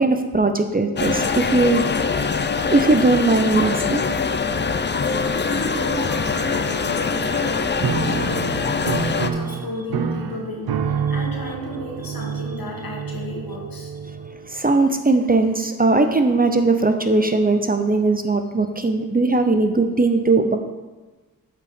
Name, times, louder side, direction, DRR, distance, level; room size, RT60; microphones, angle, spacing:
voice 1, 0.0-1.9 2.7-4.0 14.5-20.6, right 3 dB, 25° right, 7 dB, 0.7 m, -19 dB
sound 1, 1.0-9.3, left 5 dB, 30° left, 0.5 m, -23 dB
voice 2, 5.3-13.9, left 1 dB, 70° left, -2 dB, 2.0 m, -33 dB
Piano, 7.8-14.6, right 6 dB, 90° right, 0.6 m, -28 dB
7.8 x 4.9 x 5.2 m, 1.2 s
cardioid pair, 50°, 35 cm